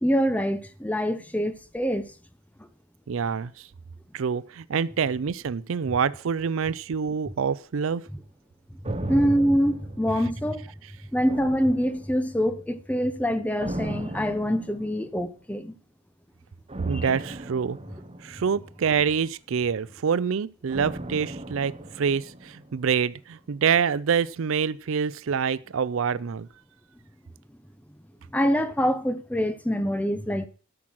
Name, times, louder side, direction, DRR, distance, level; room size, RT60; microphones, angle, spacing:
voice 1, 0.0-2.1 9.0-10.7 11.1-15.7 16.9-17.1 28.3-30.5, equal, 5° left, 0.8 m, -25 dB
voice 2, 3.1-3.7 4.1-8.0 16.8-17.8 18.2-26.5, right 6 dB, 65° right, 0.4 m, -26 dB
sound 1, 8.8-10.8 11.3-12.5 13.6-15.3 16.7-19.1 20.7-22.9 23.2-23.3, right 1 dB, 25° right, 1.0 m, -37 dB
12.5 x 6.0 x 6.3 m
head